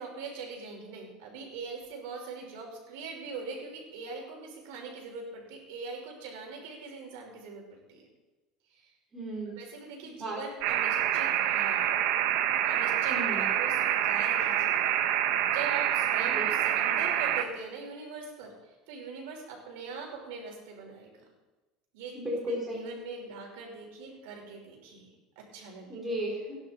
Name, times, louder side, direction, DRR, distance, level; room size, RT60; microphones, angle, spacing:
voice 1, 0.0-8.0 8.7-8.9 9.5-11.9 12.6-15.0 15.4-21.1 21.9-22.4 22.8-25.9, right 4 dB, 85° right, 0 dB, 5.1 m, -42 dB
voice 2, 9.1-9.6 10.2-10.4 13.1-13.5 16.3-16.5 22.1-22.9 25.9-26.6, equal, 15° right, -4 dB, 3.8 m, -34 dB
sound 1, 10.6-17.4, right 11 dB, 65° right, 1.1 m, -27 dB
18.0 x 11.0 x 4.5 m, 1.1 s
cardioid pair, 150°, 0 cm